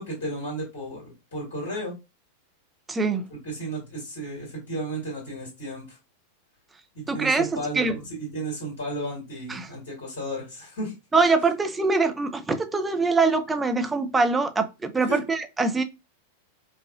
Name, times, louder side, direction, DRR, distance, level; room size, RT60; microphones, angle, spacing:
voice 1, 0.0-1.9 3.4-6.0 6.9-10.9 15.1-15.2, right 1 dB, 65° left, 1.9 m, -33 dB
voice 2, 2.9-3.3 7.1-8.0 9.5-9.7 11.1-15.8, right 3 dB, 10° right, 0.5 m, -23 dB
4.7 x 2.4 x 2.3 m
figure-of-eight pair, 90°, 0 cm